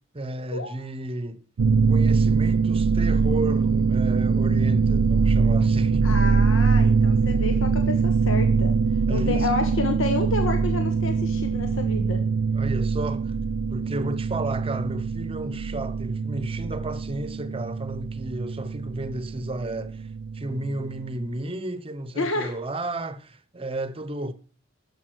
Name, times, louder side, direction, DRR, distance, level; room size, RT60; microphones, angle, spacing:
voice 1, 0.1-1.4 1.9-6.3 9.0-9.5 12.5-13.4 13.7-20.1 20.3-24.3, right 1 dB, 25° right, 0.8 m, -32 dB
sound 1, 1.6-21.1, right 5 dB, 90° right, 0.4 m, -23 dB
voice 2, 6.0-12.2 22.1-22.5, left 2 dB, 70° left, 1.4 m, -30 dB
12.5 x 7.2 x 6.2 m
head